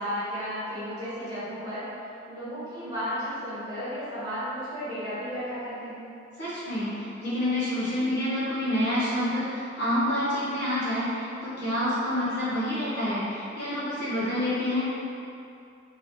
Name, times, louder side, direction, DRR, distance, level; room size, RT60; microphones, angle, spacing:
voice 1, 0.0-1.9 2.3-6.1, equal, 20° right, -13 dB, 1.1 m, -33 dB
voice 2, 6.4-14.9, left 1 dB, 60° left, -11 dB, 1.1 m, -28 dB
2.9 x 2.8 x 3.0 m, 2.6 s
head